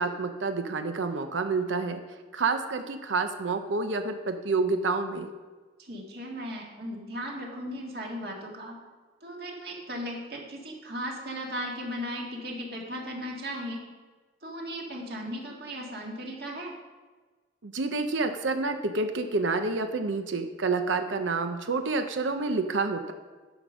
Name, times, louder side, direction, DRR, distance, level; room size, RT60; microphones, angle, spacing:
voice 1, 0.0-2.0 2.3-5.3 17.6-23.1, right 3 dB, 85° right, 7 dB, 0.7 m, -28 dB
voice 2, 5.8-8.8 9.2-13.8 14.4-16.7, equal, 55° right, -1 dB, 1.9 m, -36 dB
11.0 x 5.2 x 6.2 m, 1.4 s
head